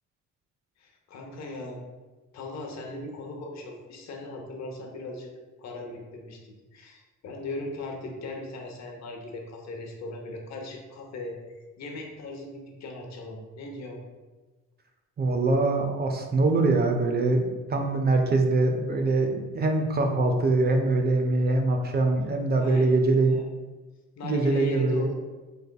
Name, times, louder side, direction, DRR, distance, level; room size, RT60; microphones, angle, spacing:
voice 1, 0.8-1.8 2.3-5.3 5.6-6.4 6.7-14.0 22.6-23.5 24.2-25.1, left 2 dB, 65° left, 1 dB, 0.7 m, -38 dB
voice 2, 15.2-23.4 24.2-25.1, right 2 dB, 35° right, 4 dB, 0.4 m, -23 dB
3.3 x 3.3 x 2.2 m, 1.3 s
cardioid pair, 90°, 30 cm